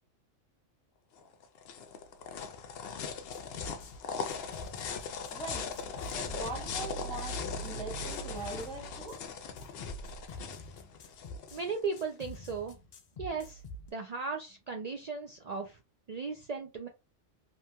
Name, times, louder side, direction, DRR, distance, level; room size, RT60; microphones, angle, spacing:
sound 1, 1.2-12.0, left 6 dB, 65° left, 0.7 m, -40 dB
sound 2, 3.3-4.0 4.3-9.2 9.6-11.6 12.0-13.9, right 1 dB, 85° left, 0.3 m, -44 dB
voice 1, 5.3-9.2, right 2 dB, 10° left, 0.3 m, -42 dB
voice 2, 11.5-12.8 13.2-13.6 13.9-15.8 16.1-16.9, right 4 dB, 90° right, 0.3 m, -36 dB
2.9 x 2.7 x 2.2 m
omnidirectional pair, 1.3 m